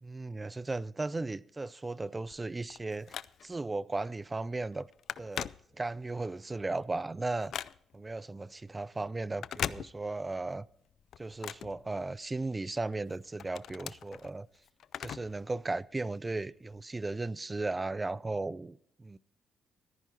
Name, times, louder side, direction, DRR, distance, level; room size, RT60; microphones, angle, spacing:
voice 1, 0.0-4.9 5.2-7.5 7.9-10.7 11.2-14.5 15.0-19.2, right 2 dB, 20° right, 0.4 m, -36 dB
Telephone, 2.3-3.7 4.2-4.4 4.7-6.2 6.6-8.1 9.3-10.4 10.7-12.5 12.9-15.4 15.7-15.8 16.7-16.8, left 9 dB, 65° left, 0.4 m, -41 dB
14.0 x 10.0 x 4.4 m
cardioid pair, 90°, 0 cm